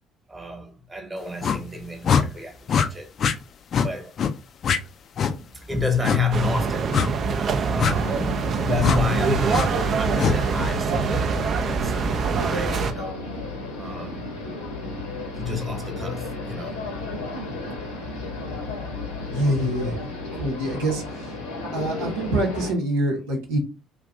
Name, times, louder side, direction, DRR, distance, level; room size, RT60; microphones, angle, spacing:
voice 1, 0.3-3.3 3.7-4.2 5.3-13.1 13.7-14.3 15.4-16.9 17.2-17.4 20.6-20.8, left 3 dB, 20° right, 1.0 m, -30 dB
sound 1, 1.4-1.6 2.0-2.2 2.7-2.9 3.2-3.4 3.7-3.9 4.2-4.3 4.6-4.8 5.2-5.3 6.0-6.2 6.9-7.1 7.8-7.9 8.8-9.0 9.5-9.7 10.2-10.4, left 7 dB, 45° left, 0.3 m, -21 dB
sound 2, 6.3-12.9, right 5 dB, 45° right, 0.3 m, -24 dB
sound 3, 7.9-22.7, left 2 dB, 75° left, 0.8 m, -33 dB
voice 2, 19.3-20.0 20.3-21.3 21.7-23.6, right 1 dB, 75° right, 0.8 m, -25 dB
2.6 x 2.4 x 3.4 m
figure-of-eight pair, 50°, 0 cm